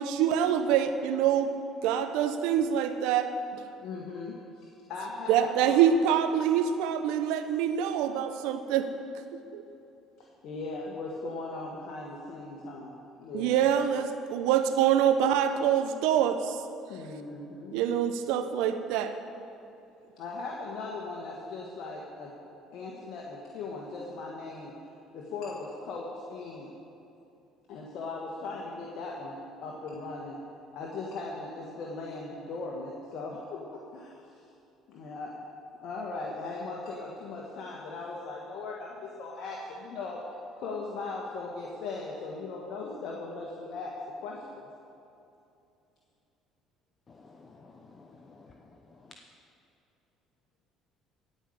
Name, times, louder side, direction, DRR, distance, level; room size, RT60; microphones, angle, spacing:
voice 1, 0.0-1.5 1.8-3.3 5.3-8.9 9.3-9.6 13.3-16.6 17.7-19.1, right 9 dB, 75° right, 9 dB, 0.8 m, -25 dB
voice 2, 3.8-4.4 4.9-5.8 10.2-12.9 13.2-13.7 16.9-17.8 20.2-22.3 22.7-24.7 25.1-26.7 27.7-30.4 30.7-34.2 34.9-35.3 35.8-40.2 40.6-43.9 44.2-44.6, left 3 dB, 65° left, -2 dB, 1.6 m, -38 dB
voice 3, 47.1-49.1, left 3 dB, 30° left, 3 dB, 1.0 m, -54 dB
16.0 x 5.6 x 8.0 m, 2.7 s
hypercardioid pair, 70°, 0 cm